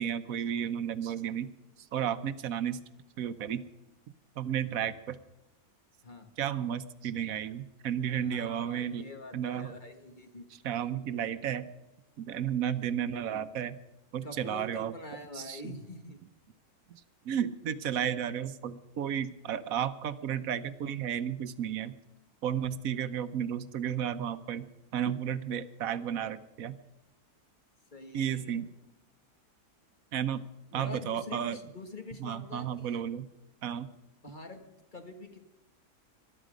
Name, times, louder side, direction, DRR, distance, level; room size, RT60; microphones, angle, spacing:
voice 1, 0.0-1.5 1.9-2.8 3.2-3.6 4.1-5.2 6.4-9.0 9.3-9.7 10.6-11.6 12.2-13.8 14.1-14.9 15.3-15.8 16.9-21.9 22.4-24.7 24.9-26.8 28.1-28.7 30.1-30.4 30.7-31.6 32.2-33.3 33.6-33.9, right 9 dB, 65° right, 13 dB, 1.2 m, -33 dB
voice 2, 8.2-10.5 14.2-16.2 27.9-28.6 30.7-33.0 34.2-34.6 34.9-35.4, left 2 dB, 30° left, 5 dB, 1.5 m, -45 dB
21.5 x 12.5 x 5.1 m, 0.99 s
omnidirectional pair, 1.7 m